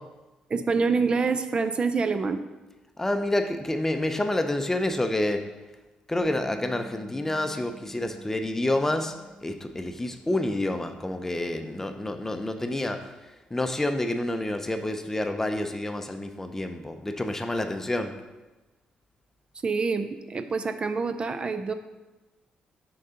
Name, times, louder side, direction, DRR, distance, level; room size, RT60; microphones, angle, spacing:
voice 1, 0.5-2.4 19.6-21.7, right 4 dB, 35° right, 9 dB, 0.4 m, -26 dB
voice 2, 3.0-5.4 6.1-9.1 9.4-13.1 13.5-18.1, left 1 dB, 15° left, 6 dB, 0.6 m, -28 dB
Bass guitar, 6.2-12.5, equal, 55° right, 1.1 m, -49 dB
6.4 x 3.9 x 5.7 m, 1.1 s
cardioid pair, 90°, 3 cm